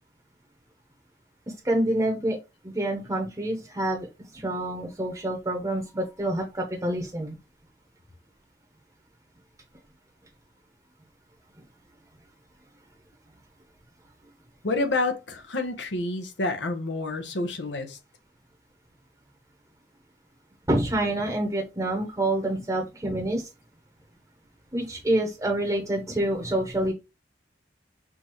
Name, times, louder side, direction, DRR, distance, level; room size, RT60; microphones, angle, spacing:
voice 1, 1.5-2.4 2.6-7.3 20.7-23.5 24.7-26.9, right 1 dB, 20° right, 0.8 m, -27 dB
voice 2, 14.6-18.0, left 2 dB, 85° left, 0.9 m, -28 dB
6.0 x 2.7 x 3.0 m
head